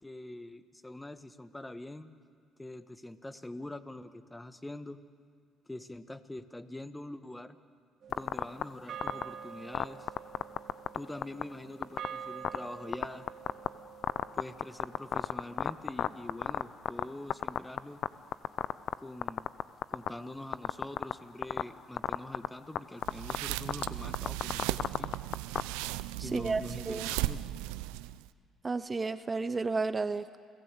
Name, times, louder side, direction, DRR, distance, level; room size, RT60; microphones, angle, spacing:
voice 1, 0.0-2.1 2.6-5.0 5.7-7.6 8.1-10.1 10.9-13.3 14.3-18.0 19.0-19.5 19.9-25.1 26.2-27.5, left 1 dB, 15° left, 11 dB, 1.4 m, -44 dB
sound 1, 8.0-16.5, right 8 dB, 60° right, 1.4 m, -47 dB
sound 2, 8.1-8.6 9.0-9.2 9.7-11.0 11.2-11.4 11.8-12.1 12.4-12.6 12.9-13.7 14.0-17.0 17.3-18.1 18.3-18.9 19.2-20.1 20.5-21.1 21.4-21.6 22.0-22.5 22.8-22.9 23.0-23.4 23.7-25.6, left 10 dB, 65° left, 0.7 m, -29 dB
sound 3, 23.0-28.3, right 17 dB, 85° right, 0.5 m, -36 dB
voice 2, 26.2-27.1 28.6-30.4, right 4 dB, 30° right, 12 dB, 0.8 m, -32 dB
29.0 x 17.0 x 8.3 m, 2.1 s
supercardioid pair, 65°, 0 cm